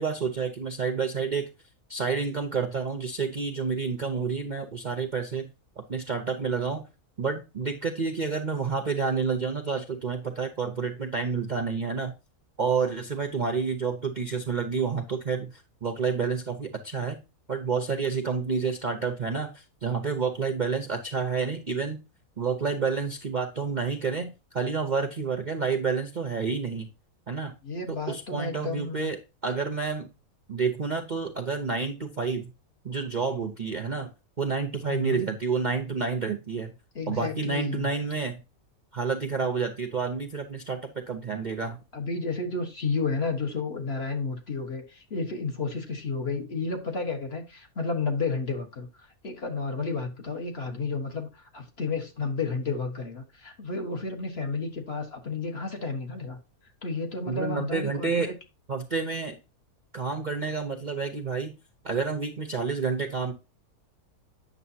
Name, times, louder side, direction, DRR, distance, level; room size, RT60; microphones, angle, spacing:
voice 1, 0.0-1.5 1.9-5.5 5.9-6.8 7.2-12.1 12.6-17.2 17.5-22.0 22.4-26.9 27.3-27.5 27.9-30.1 30.5-32.5 32.8-34.1 34.4-36.7 37.1-38.4 38.9-41.8 57.3-58.3 58.7-59.4 59.9-61.5 61.8-63.3, right 5 dB, 40° right, 0.7 m, -29 dB
voice 2, 27.6-29.1 34.9-35.2 36.9-37.9 41.9-48.9 49.2-56.4 56.8-58.3, left 4 dB, 45° left, 1.6 m, -31 dB
9.1 x 6.8 x 2.7 m
omnidirectional pair, 1.6 m